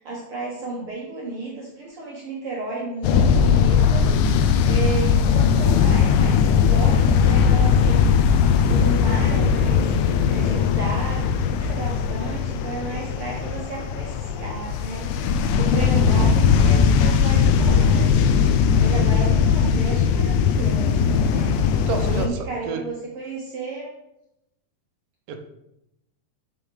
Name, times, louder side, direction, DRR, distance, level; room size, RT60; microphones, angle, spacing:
voice 1, 0.0-8.1 8.7-9.8 10.3-15.2 15.6-23.9, right 3 dB, 65° right, -3 dB, 1.5 m, -33 dB
sound 1, 3.0-22.3, left 6 dB, 80° left, 1.9 m, -19 dB
voice 2, 15.7-16.3 21.9-22.4 22.7-22.8 25.3-25.4, right 5 dB, 90° right, 6 dB, 2.3 m, -30 dB
7.1 x 5.6 x 3.4 m, 0.84 s
omnidirectional pair, 3.6 m